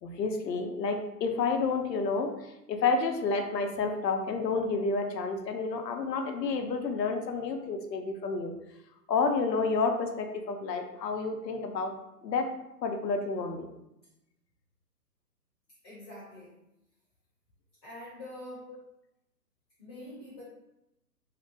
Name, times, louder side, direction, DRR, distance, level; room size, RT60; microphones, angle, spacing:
voice 1, 0.0-8.5 9.1-11.9 12.2-12.5 12.8-13.7, left 4 dB, 75° left, 5 dB, 0.6 m, -30 dB
voice 2, 15.8-16.6 17.8-18.7 19.8-20.4, left 1 dB, 15° left, -11 dB, 0.7 m, -45 dB
2.6 x 2.1 x 2.6 m, 0.89 s
figure-of-eight pair, 140°, 50 cm